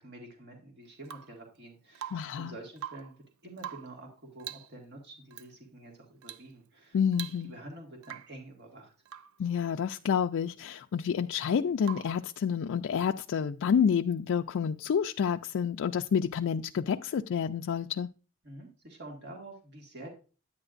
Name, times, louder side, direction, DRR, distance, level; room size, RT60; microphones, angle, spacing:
voice 1, 0.0-3.1 3.4-7.0 7.4-8.9 18.4-20.1, right 2 dB, 55° right, 1.9 m, -48 dB
Rain / Water tap faucet / Drip, 1.0-1.4 1.9-2.4 2.7-3.2 3.6-4.0 4.4-4.8 5.3-5.5 6.2-6.5 6.8-6.9 7.1-7.7 8.0-8.4 9.1-9.4 11.8-12.3 14.2-14.3, right 10 dB, 75° right, 0.4 m, -43 dB
voice 2, 2.1-2.5 6.9-7.5 9.4-18.1, left 7 dB, 65° left, 0.3 m, -29 dB
9.9 x 8.8 x 2.5 m
head